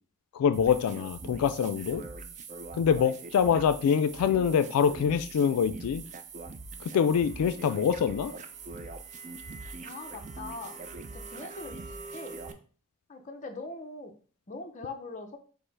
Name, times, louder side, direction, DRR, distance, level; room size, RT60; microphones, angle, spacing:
voice 1, 0.3-2.0 2.7-6.0 6.8-8.3, left 7 dB, 85° left, 12 dB, 0.3 m, -25 dB
sound 1, 0.5-12.5, right 3 dB, 35° right, 0.4 m, -42 dB
voice 2, 9.8-10.8 11.1-11.8 12.1-12.4 13.1-14.1 14.5-15.4, left 3 dB, 35° left, 5 dB, 0.6 m, -41 dB
5.2 x 2.0 x 4.5 m, 0.41 s
head